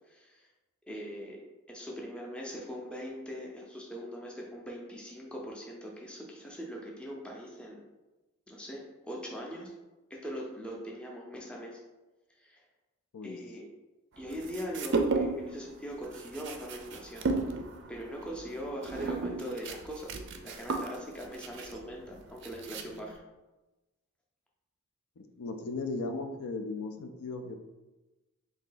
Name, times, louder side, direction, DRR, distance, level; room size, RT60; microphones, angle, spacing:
voice 1, 0.1-0.5 0.9-1.4 1.7-7.8 8.5-9.7 10.2-11.8 12.4-12.6 13.2-13.6 14.2-17.3 17.9-20.2 20.4-23.2, equal, 5° left, -2 dB, 0.5 m, -41 dB
sound 1, 14.3-15.5 15.8-23.2, right 3 dB, 50° right, 0.4 m, -34 dB
voice 2, 25.2-27.6, left 3 dB, 75° left, 5 dB, 0.4 m, -37 dB
3.7 x 2.7 x 3.8 m, 1.1 s
head